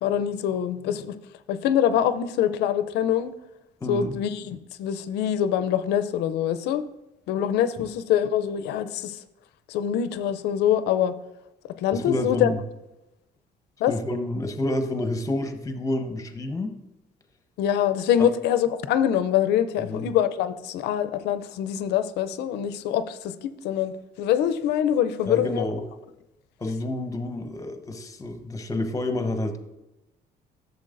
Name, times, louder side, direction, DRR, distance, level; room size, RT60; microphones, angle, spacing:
voice 1, 0.0-1.2 1.5-3.3 3.9-6.8 7.3-9.2 9.7-11.1 11.6-12.5 13.8-14.0 17.6-25.7, left 10 dB, 80° left, 12 dB, 0.5 m, -24 dB
voice 2, 3.8-4.1 7.8-7.9 11.9-12.6 13.9-16.7 18.2-18.3 19.9-20.1 25.3-25.8 26.6-29.6, left 1 dB, 20° left, 6 dB, 0.9 m, -29 dB
11.5 x 7.1 x 2.6 m, 0.96 s
cardioid pair, 110°, 17 cm